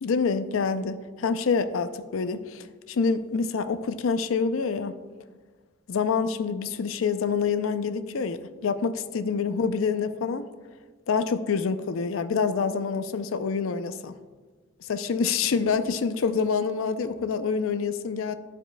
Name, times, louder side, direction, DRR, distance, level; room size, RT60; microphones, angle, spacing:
voice 1, 0.0-5.0 5.9-10.5 11.1-14.1 14.8-18.3, left 5 dB, 75° left, 11 dB, 0.5 m, -27 dB
14.0 x 4.8 x 2.2 m, 1.4 s
head